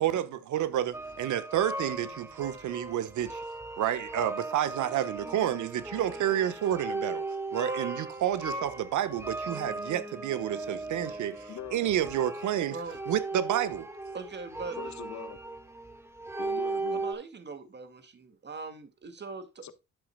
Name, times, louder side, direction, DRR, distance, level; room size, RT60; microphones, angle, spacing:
voice 1, 0.0-3.4 3.8-7.2 7.5-12.8 13.1-13.9, right 11 dB, 75° right, 1.3 m, -30 dB
sound 1, 0.9-17.1, right 2 dB, 10° right, 1.9 m, -37 dB
voice 2, 11.5-11.9 14.8-15.4 16.4-17.0 19.6-19.7, left 9 dB, 65° left, 1.1 m, -42 dB
voice 3, 14.1-14.9 16.9-19.7, right 4 dB, 35° right, 2.1 m, -41 dB
11.0 x 8.0 x 2.2 m
cardioid pair, 90°, 30 cm